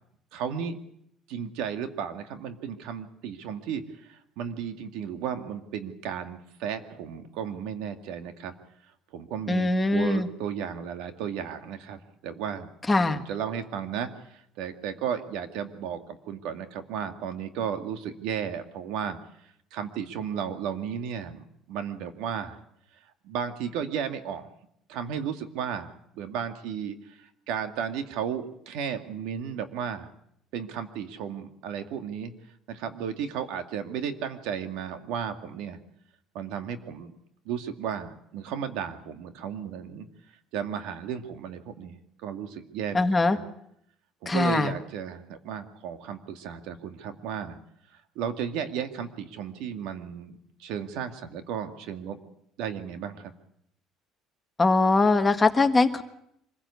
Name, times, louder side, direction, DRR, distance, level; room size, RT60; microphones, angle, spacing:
voice 1, 0.3-0.8 1.3-8.5 9.1-12.7 13.1-19.2 19.7-22.6 23.2-24.5 24.9-30.1 30.5-32.3 32.7-35.8 36.3-37.2 37.5-40.1 40.5-43.4 44.2-47.6 48.2-52.2 52.6-53.3, right 8 dB, 80° right, 8 dB, 2.2 m, -34 dB
voice 2, 9.5-10.3 12.9-13.2 42.9-43.4 44.2-44.7 54.6-56.0, left 3 dB, 15° left, 7 dB, 1.5 m, -22 dB
25.0 x 16.0 x 8.5 m, 0.73 s
cardioid pair, 135°, 0 cm